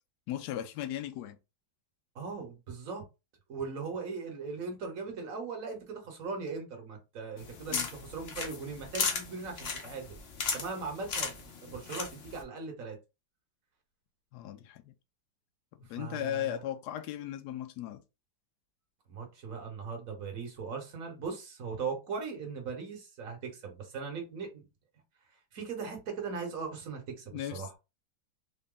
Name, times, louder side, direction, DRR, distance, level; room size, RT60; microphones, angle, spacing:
voice 1, 0.3-1.4 7.7-7.9 14.3-14.9 15.8-18.0 27.3-27.8, left 11 dB, 70° left, 1.1 m, -37 dB
voice 2, 2.1-3.0 3.5-10.1 10.5-13.0 15.9-16.5 19.1-24.6 25.5-27.7, right 5 dB, 50° right, 1.4 m, -39 dB
sound 1, 7.4-12.4, left 5 dB, 55° left, 0.7 m, -36 dB
3.9 x 2.1 x 3.7 m
omnidirectional pair, 1.9 m